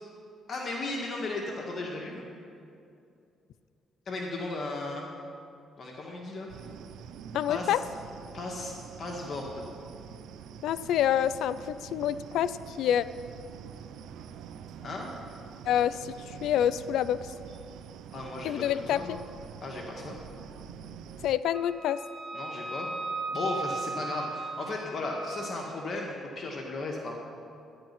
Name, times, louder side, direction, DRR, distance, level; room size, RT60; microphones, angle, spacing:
voice 1, 0.5-2.3 4.1-5.1 5.8-6.5 7.5-7.8 8.3-8.7 9.0-9.6 14.8-15.1 18.1-19.2 19.6-20.2 22.3-22.9 23.3-27.1, left 2 dB, 50° left, -1 dB, 1.7 m, -35 dB
sound 1, 6.5-21.4, right 8 dB, 85° right, 0.5 m, -46 dB
voice 2, 7.3-7.8 10.6-13.1 15.7-17.2 18.4-19.2 21.2-22.0, left 10 dB, 85° left, 14 dB, 0.4 m, -27 dB
Wind instrument woodwind instrument, 21.5-25.6, right 3 dB, 5° right, 3.3 m, -37 dB
12.5 x 10.5 x 5.9 m, 2.6 s
cardioid pair, 90°, 0 cm